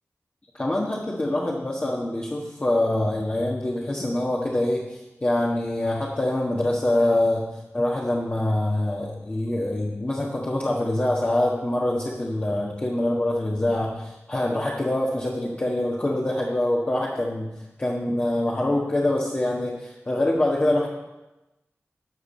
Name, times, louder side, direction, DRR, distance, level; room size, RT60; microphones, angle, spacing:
voice 1, 0.5-7.4 7.7-17.5 17.8-20.9, left 1 dB, 35° left, -4 dB, 1.5 m, -25 dB
12.5 x 4.9 x 7.4 m, 1.0 s
wide cardioid pair, 85°, 5 cm